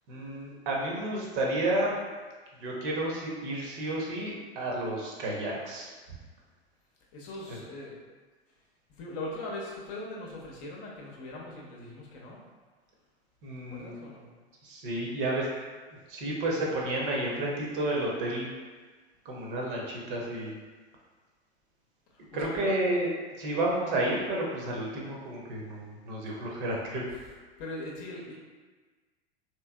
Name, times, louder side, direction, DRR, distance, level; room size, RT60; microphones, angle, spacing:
voice 1, 0.1-2.0 2.6-5.9 13.4-14.0 14.6-15.5 16.1-18.5 19.2-20.5 22.3-23.1 23.4-27.1, right 1 dB, 50° right, -2 dB, 0.8 m, -31 dB
voice 2, 7.1-8.0 8.9-12.4 13.7-14.3 22.1-22.7 27.1-27.3 27.6-28.3, left 2 dB, 45° left, -3 dB, 0.8 m, -40 dB
3.3 x 3.0 x 2.2 m, 1.4 s
figure-of-eight pair, 85°, 33 cm